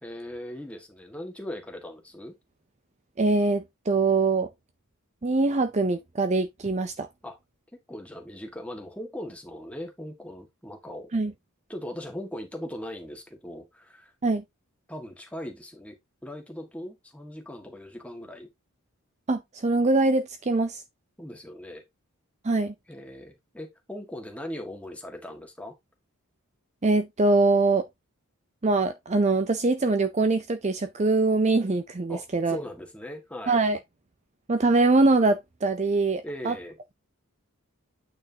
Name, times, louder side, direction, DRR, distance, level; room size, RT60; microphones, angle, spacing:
voice 1, 0.0-2.3 7.2-7.4 7.9-11.1 11.7-14.1 14.9-16.0 16.2-18.5 21.2-21.8 22.9-25.7 32.1-33.6 36.2-36.8, left 1 dB, 5° left, 1.8 m, -39 dB
voice 2, 3.2-4.5 5.2-7.1 11.1-11.3 14.2-14.4 19.3-20.8 22.4-22.7 26.8-27.8 28.6-32.6 33.5-33.8 34.5-36.5, right 3 dB, 30° right, 0.5 m, -23 dB
8.8 x 5.9 x 2.8 m
head